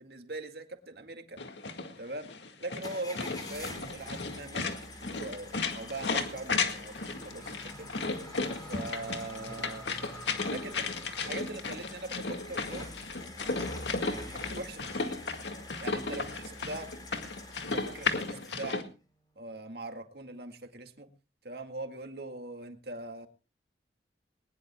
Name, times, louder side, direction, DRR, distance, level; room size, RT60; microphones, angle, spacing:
voice 1, 0.0-1.4 2.0-2.3 2.6-4.7 5.0-7.9 8.7-9.9 10.5-12.9 13.6-13.7 14.1-15.2 15.8-16.9 17.7-18.9 19.4-21.1 21.4-23.3, right 2 dB, 60° right, 6 dB, 2.0 m, -41 dB
sound 1, 1.4-18.8, left 4 dB, 90° left, 1.9 m, -35 dB
sound 2, 2.8-18.7, left 2 dB, 25° left, 4.3 m, -47 dB
sound 3, 6.5-12.9, right 1 dB, 5° left, 4.4 m, -50 dB
21.0 x 20.0 x 2.3 m, 0.32 s
head